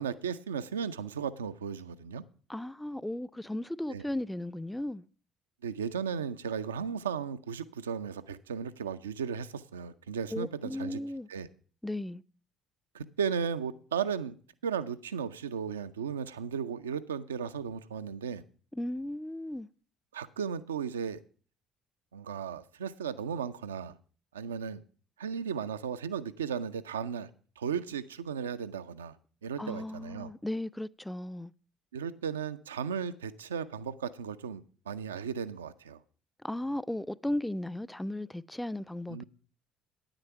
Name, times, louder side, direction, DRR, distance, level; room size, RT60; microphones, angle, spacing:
voice 1, 0.0-2.2 3.9-4.0 5.6-11.0 11.3-11.5 12.9-14.3 14.6-18.4 20.1-21.2 22.1-24.0 24.3-24.8 25.2-27.3 27.6-29.2 29.4-30.3 31.9-36.0 39.1-39.2, right 7 dB, 80° right, 0.5 m, -35 dB
voice 2, 2.5-5.1 10.3-11.3 11.8-12.2 18.7-19.7 29.6-31.5 36.4-39.2, left 1 dB, 5° left, 0.4 m, -36 dB
9.6 x 8.9 x 5.7 m
figure-of-eight pair, 50°, 0 cm